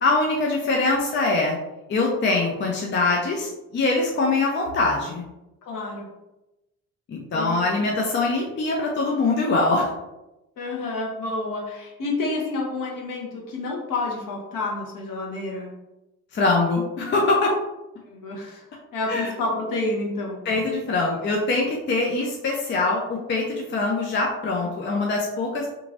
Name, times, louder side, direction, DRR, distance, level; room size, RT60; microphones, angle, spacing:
voice 1, 0.0-1.6 1.9-5.2 7.1-9.9 16.3-17.5 19.1-19.3 20.5-25.7, left 3 dB, 25° left, -1 dB, 0.5 m, -23 dB
voice 2, 5.6-6.1 7.3-7.6 10.6-15.8 18.1-18.6 18.9-20.4, left 2 dB, 50° left, -1 dB, 1.0 m, -29 dB
2.9 x 2.4 x 2.6 m, 0.96 s
hypercardioid pair, 50°, 44 cm